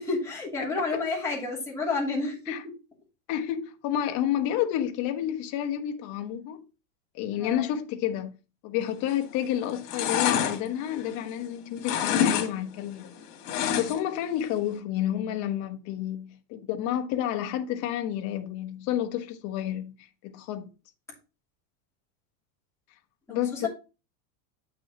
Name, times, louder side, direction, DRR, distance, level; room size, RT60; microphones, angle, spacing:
voice 1, 0.0-2.7 7.4-7.7 13.6-13.8 23.3-23.7, left 3 dB, 5° left, 2.8 m, -31 dB
voice 2, 0.6-1.0 2.5-2.6 3.3-6.6 7.1-8.4 8.6-13.1 13.8-20.0 20.2-20.7 23.3-23.7, left 11 dB, 40° left, 1.0 m, -30 dB
sound 1, 9.0-9.4 9.7-11.5 11.8-12.5 12.7-14.2 14.5-14.6, left 9 dB, 70° left, 2.2 m, -27 dB
8.6 x 6.2 x 2.9 m
supercardioid pair, 170°, 46 cm